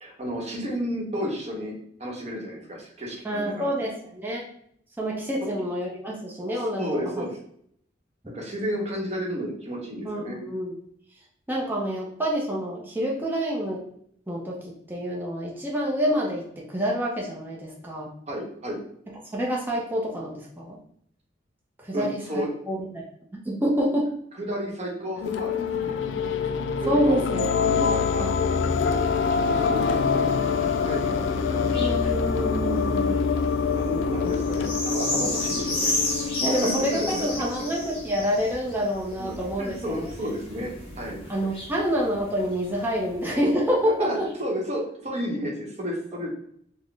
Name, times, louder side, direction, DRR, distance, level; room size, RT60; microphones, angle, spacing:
voice 1, 0.0-1.7 2.0-3.7 5.4-5.5 6.8-7.4 8.3-10.4 18.3-18.8 21.9-22.5 24.4-26.0 26.8-27.2 27.6-28.3 29.3-31.9 33.7-35.9 36.5-37.2 39.2-41.2 44.0-46.3, equal, 35° right, -1 dB, 0.9 m, -32 dB
voice 2, 3.2-4.4 5.0-6.9 7.1-7.2 10.1-10.8 11.5-13.8 14.3-18.1 19.3-20.8 21.8-23.0 23.4-24.1 26.9-27.5 28.2-28.3 31.8-33.3 36.4-40.1 41.3-44.3, equal, 10° right, -3 dB, 0.5 m, -27 dB
sound 1, 25.2-38.1, left 6 dB, 80° left, 0.3 m, -25 dB
sound 2, 27.8-43.6 44.2-44.3, left 2 dB, 30° left, 1.0 m, -35 dB
4.0 x 2.0 x 3.2 m, 0.67 s
head